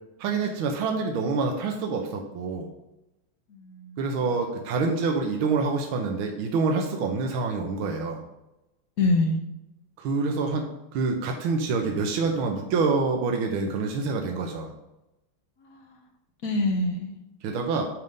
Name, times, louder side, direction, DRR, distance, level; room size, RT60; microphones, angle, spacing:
voice 1, 0.2-2.7 4.0-8.2 10.0-10.6 10.9-14.7 17.4-17.9, right 4 dB, 75° right, 2 dB, 1.6 m, -26 dB
voice 2, 3.5-4.3 9.0-9.4 15.6-16.0 16.4-17.1, left 2 dB, 60° left, 3 dB, 0.9 m, -26 dB
9.3 x 3.6 x 5.2 m, 0.93 s
omnidirectional pair, 2.4 m